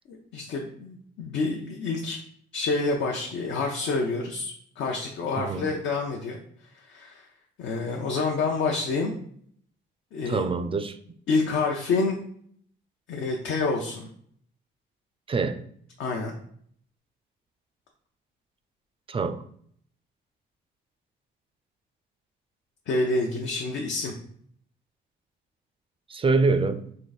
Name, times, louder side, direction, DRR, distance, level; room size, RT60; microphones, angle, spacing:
voice 1, 0.1-2.2 2.5-6.4 6.7-7.3 7.6-9.1 10.1-10.4 11.3-12.2 13.1-14.1 16.0-16.4 22.9-24.1, left 3 dB, 75° left, 0.7 m, -28 dB
voice 2, 10.3-11.0 15.3-15.6 19.1-19.4 26.1-26.9, right 4 dB, 25° right, 0.4 m, -25 dB
3.9 x 2.6 x 4.0 m
cardioid pair, 90°, 20 cm